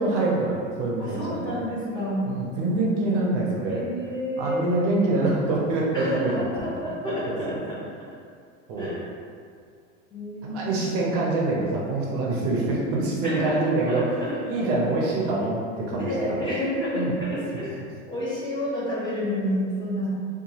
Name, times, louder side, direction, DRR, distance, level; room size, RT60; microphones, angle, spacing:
voice 1, 0.0-1.5 2.2-3.8 4.4-6.4 7.1-7.6 8.7-8.9 10.4-14.0 14.4-16.1 16.9-17.1 17.5-17.6, right 2 dB, 45° right, -4 dB, 0.5 m, -25 dB
voice 2, 1.0-2.3 3.7-4.6 5.9-7.8 8.8-9.0 10.1-10.8 13.2-14.4 15.8-17.7 18.1-20.1, equal, 15° left, -9 dB, 0.7 m, -29 dB
2.8 x 2.3 x 2.8 m, 2.2 s
supercardioid pair, 145°, 32 cm